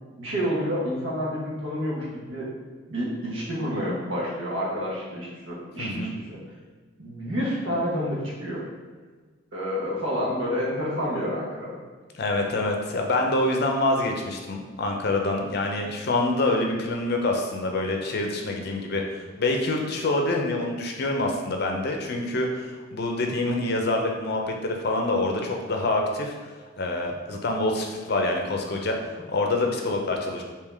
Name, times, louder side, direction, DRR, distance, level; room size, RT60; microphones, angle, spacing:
voice 1, 0.2-2.5 2.9-6.4 7.0-8.6 9.5-11.8, equal, 80° right, -6 dB, 1.2 m, -29 dB
voice 2, 5.8-6.1 12.1-26.5 26.8-30.4, left 2 dB, 55° left, 2 dB, 0.5 m, -26 dB
3.6 x 2.9 x 3.4 m, 1.4 s
head